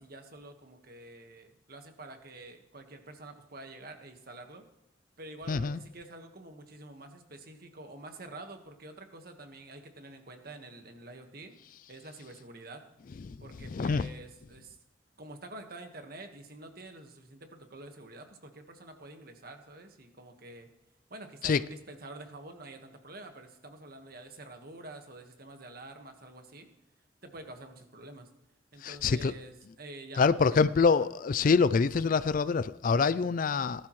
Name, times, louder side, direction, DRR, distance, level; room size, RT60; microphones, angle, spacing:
voice 1, 0.0-4.7 5.2-11.5 11.9-12.8 13.4-14.8 15.2-20.7 21.1-26.7 27.2-28.3 28.7-31.1, right 2 dB, 50° right, 1.5 m, -48 dB
voice 2, 5.5-5.8 13.2-13.3 13.7-14.1 21.4-21.6 28.8-29.3 30.2-33.9, left 5 dB, 45° left, 0.3 m, -25 dB
19.0 x 12.0 x 3.2 m
head